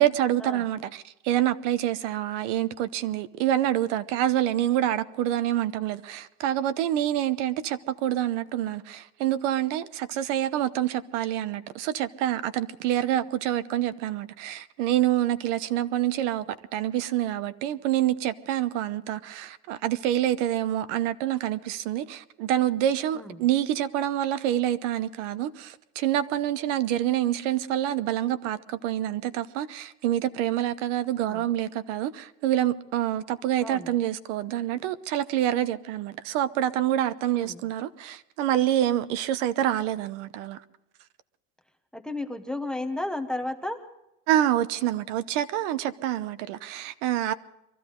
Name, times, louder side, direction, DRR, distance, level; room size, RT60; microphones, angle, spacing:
voice 1, 0.0-40.6 44.3-47.3, right 12 dB, 80° right, 0.9 m, -27 dB
voice 2, 33.6-33.9 37.3-37.6 41.9-43.8, left 2 dB, ahead, 0.8 m, -33 dB
23.5 x 14.5 x 3.8 m
cardioid pair, 175°, 36 cm